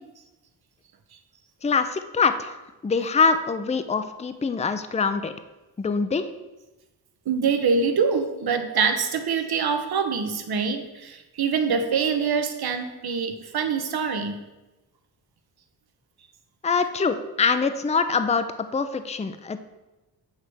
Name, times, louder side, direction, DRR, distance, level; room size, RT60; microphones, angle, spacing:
voice 1, 1.6-2.6 2.8-5.3 5.8-6.3 16.6-19.6, left 5 dB, 15° left, 10 dB, 0.5 m, -24 dB
voice 2, 7.3-14.4, right 5 dB, 60° right, 7 dB, 1.0 m, -25 dB
8.2 x 3.3 x 6.1 m, 1.1 s
cardioid pair, 60°, 42 cm